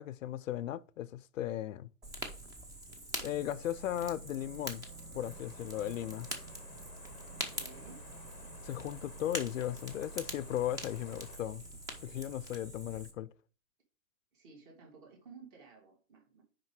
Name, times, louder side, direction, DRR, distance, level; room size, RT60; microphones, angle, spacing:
voice 1, 0.0-1.9 3.2-4.8 5.1-6.3 8.6-11.6 12.0-13.3, left 12 dB, 70° left, 0.5 m, -36 dB
Fire, 2.0-13.1, right 1 dB, 10° right, 0.6 m, -45 dB
sound 1, 3.2-12.8, right 4 dB, 70° right, 1.0 m, -52 dB
sound 2, 5.2-11.4, left 11 dB, 35° left, 0.6 m, -57 dB
voice 2, 7.3-8.0 14.3-16.4, right 5 dB, 40° right, 2.7 m, -55 dB
6.0 x 5.0 x 4.7 m
hypercardioid pair, 145°, 40 cm